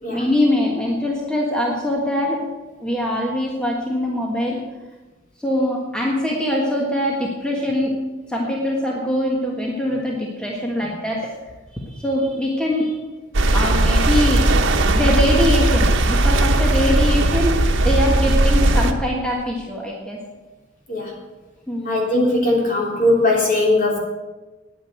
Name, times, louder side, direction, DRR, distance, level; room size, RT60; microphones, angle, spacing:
voice 1, 0.1-2.5 2.8-4.6 5.4-8.0 8.3-11.3 11.7-13.0 13.5-14.5 14.9-20.2 21.7-22.0, left 1 dB, 5° left, -2 dB, 1.5 m, -23 dB
sound 1, 13.3-18.9, right 1 dB, 85° right, 1.0 m, -17 dB
voice 2, 21.8-24.0, left 1 dB, 45° left, -2 dB, 3.3 m, -19 dB
9.9 x 9.0 x 7.7 m, 1.2 s
head